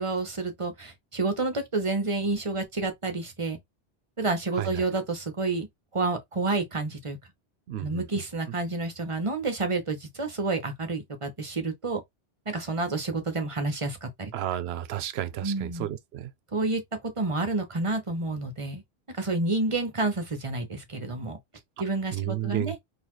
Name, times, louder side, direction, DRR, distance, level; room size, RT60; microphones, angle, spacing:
voice 1, 0.0-3.6 4.2-5.7 5.9-7.2 7.8-12.0 12.5-14.3 15.4-15.9 16.5-16.8 17.2-18.8 19.1-21.4 21.8-22.8, right 3 dB, 35° right, 0.9 m, -29 dB
voice 2, 7.7-8.0 14.3-16.3 22.1-22.8, right 12 dB, 80° right, 0.8 m, -32 dB
4.0 x 2.7 x 3.0 m
omnidirectional pair, 1.0 m